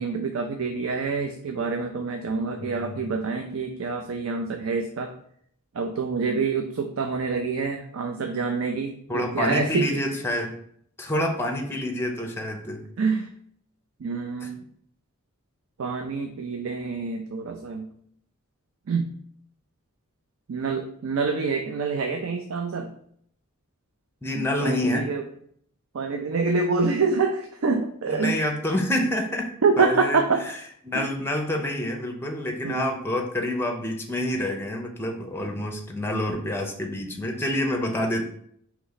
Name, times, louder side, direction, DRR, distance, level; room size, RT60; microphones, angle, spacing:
voice 1, 0.0-5.1 5.7-10.2 13.0-13.3 14.0-14.6 15.8-17.9 18.9-19.1 20.5-22.9 24.3-25.2 25.9-28.4 29.6-30.4 30.9-31.1 32.6-32.8, right 4 dB, 65° right, 5 dB, 0.4 m, -26 dB
voice 2, 2.6-3.1 9.1-10.6 11.0-12.9 14.4-14.5 24.2-25.1 28.1-30.6 30.8-38.3, left 1 dB, 10° left, 3 dB, 0.6 m, -28 dB
4.1 x 3.0 x 4.0 m, 0.65 s
head